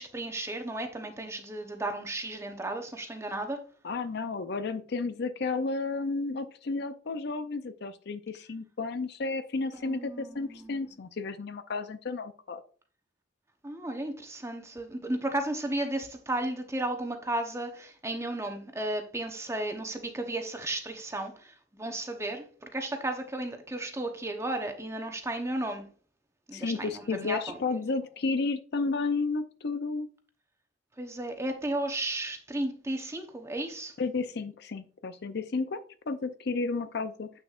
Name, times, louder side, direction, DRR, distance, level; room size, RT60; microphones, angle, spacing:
voice 1, 0.0-3.6 9.8-10.8 13.6-25.9 26.5-27.6 31.0-33.9, right 1 dB, 15° right, 0.9 m, -34 dB
voice 2, 3.8-12.6 26.5-30.1 34.0-37.3, left 3 dB, 55° left, 0.5 m, -32 dB
8.1 x 6.3 x 2.4 m
head